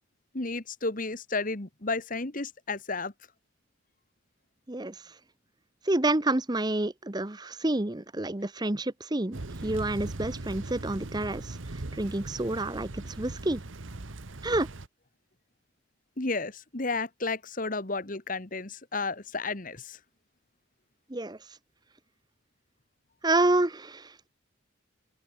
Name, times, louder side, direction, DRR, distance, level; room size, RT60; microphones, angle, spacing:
voice 1, 0.3-3.1 16.2-20.0, left 3 dB, 40° left, 1.6 m, -32 dB
voice 2, 4.7-5.1 5.8-13.6 14.4-14.7 21.1-21.4 23.2-24.3, right 2 dB, 20° right, 0.9 m, -29 dB
Thunder / Rain, 9.3-14.9, right 2 dB, 75° right, 1.3 m, -39 dB
open air
head